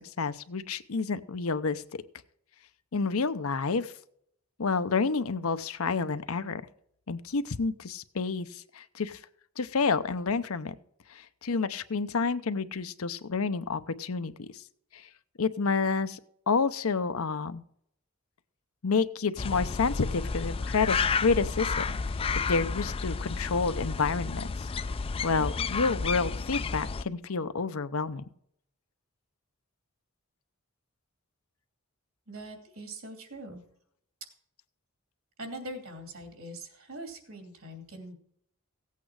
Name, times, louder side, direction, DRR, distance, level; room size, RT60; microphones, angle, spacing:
voice 1, 0.2-1.8 2.9-3.9 4.6-6.6 7.1-8.5 8.7-9.2 9.6-10.7 11.4-14.3 15.4-16.2 16.5-17.6 18.8-21.8 22.3-24.5 25.2-28.2, left 4 dB, 75° left, 12 dB, 0.7 m, -29 dB
sound 1, 19.4-27.0, left 4 dB, 25° left, 0.4 m, -31 dB
voice 2, 32.3-33.6 35.4-38.1, right 1 dB, 70° right, 5 dB, 2.8 m, -42 dB
16.5 x 8.4 x 4.8 m, 0.70 s
head